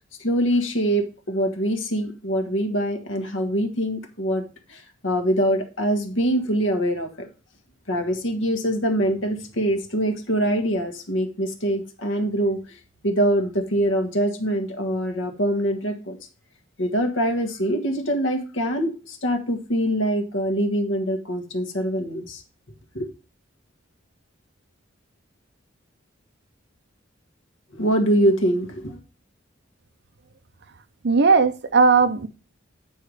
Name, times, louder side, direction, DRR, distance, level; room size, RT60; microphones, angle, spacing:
voice 1, 0.2-4.4 4.7-7.3 7.9-12.6 13.0-16.2 16.8-22.4 22.9-23.1 27.7-29.0, equal, 75° left, 1.5 m, -24 dB
voice 2, 31.0-32.3, right 4 dB, 60° right, 0.7 m, -17 dB
8.7 x 4.7 x 4.9 m
head